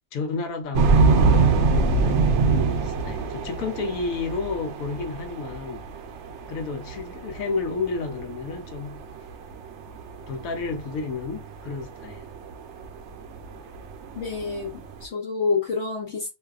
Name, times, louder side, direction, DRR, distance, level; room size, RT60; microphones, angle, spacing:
voice 1, 0.1-1.6 2.0-5.8 6.5-9.0 10.3-12.2, left 4 dB, 85° left, 1.0 m, -31 dB
sound 1, 0.7-14.9, right 4 dB, 65° right, 0.8 m, -24 dB
voice 2, 14.1-16.3, left 4 dB, 60° left, 1.0 m, -28 dB
2.6 x 2.3 x 2.3 m
omnidirectional pair, 1.4 m